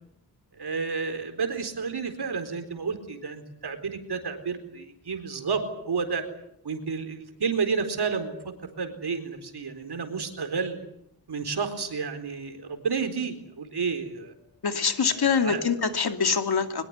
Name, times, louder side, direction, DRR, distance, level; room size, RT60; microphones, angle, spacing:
voice 1, 0.5-6.2 6.6-10.8 11.3-14.3 15.0-15.6, right 5 dB, 65° right, 8 dB, 4.1 m, -31 dB
voice 2, 14.6-16.8, left 5 dB, 65° left, 7 dB, 2.7 m, -24 dB
23.0 x 21.5 x 9.6 m, 0.77 s
wide cardioid pair, 125°, 42 cm